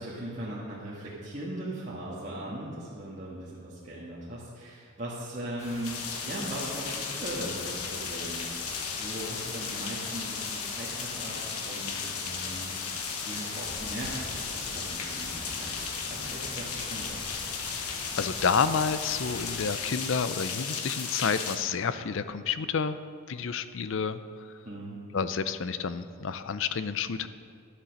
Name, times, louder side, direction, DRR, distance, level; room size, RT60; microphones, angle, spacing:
voice 1, 0.0-12.7 13.2-17.3 24.6-25.0, right 1 dB, 35° right, -8 dB, 1.6 m, -39 dB
sound 1, 5.6-19.7, left 1 dB, 30° left, 1.7 m, -44 dB
sound 2, 5.8-21.6, left 6 dB, 85° left, 1.2 m, -35 dB
voice 2, 17.7-23.0 23.3-24.6 25.1-27.3, left 6 dB, 55° left, 13 dB, 0.5 m, -30 dB
12.0 x 7.5 x 6.4 m, 2.4 s
head